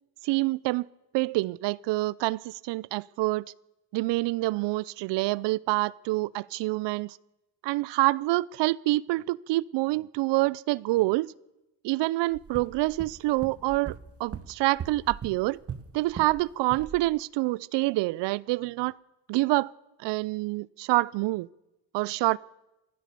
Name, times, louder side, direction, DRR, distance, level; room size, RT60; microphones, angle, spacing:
voice 1, 0.2-0.9 1.1-3.5 3.9-7.2 7.6-11.3 11.8-15.6 15.9-19.0 19.3-19.7 20.0-21.5 21.9-22.4, right 20 dB, 65° right, 0.6 m, -27 dB
sound 1, 12.3-16.4 16.7-17.0, right 7 dB, 30° right, 1.3 m, -40 dB
25.0 x 15.0 x 6.9 m
cardioid pair, 110°, 45 cm